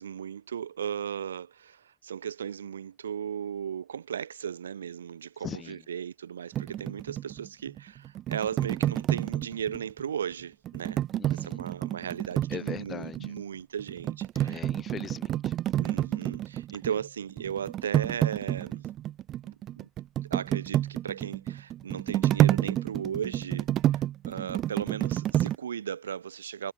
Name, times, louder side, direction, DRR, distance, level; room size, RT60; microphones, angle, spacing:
voice 1, 0.0-11.0 11.3-14.6 15.8-18.9 19.8-19.9 20.3-26.7, right 8 dB, 80° right, 4.2 m, -36 dB
voice 2, 5.4-5.8 11.1-11.6 12.5-13.4 14.4-15.6, left 7 dB, 40° left, 2.1 m, -41 dB
sound 1, 6.5-10.0 10.7-13.4 13.8-17.1 17.3-25.6, right 12 dB, 50° right, 0.4 m, -29 dB
figure-of-eight pair, 55°, 0 cm